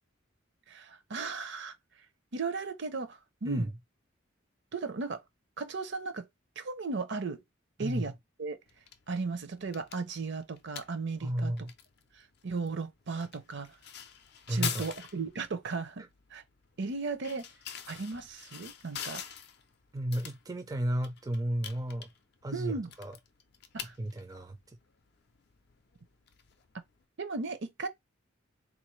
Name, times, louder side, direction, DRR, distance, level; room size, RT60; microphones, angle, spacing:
voice 1, 0.7-1.7 2.3-3.7 4.7-5.2 5.6-6.3 6.6-7.4 7.8-8.1 8.4-8.6 9.1-11.7 12.1-13.8 14.5-16.4 16.8-17.5 17.9-19.2 22.5-22.9 23.7-23.9 27.2-27.9, right 4 dB, 60° right, 0.6 m, -36 dB
sound 1, 8.7-27.0, left 8 dB, 55° left, 0.5 m, -46 dB
voice 2, 11.2-11.7 14.5-14.9 19.9-22.1 22.4-23.2 24.0-24.6, right 1 dB, 20° right, 0.4 m, -33 dB
3.7 x 2.6 x 3.1 m
head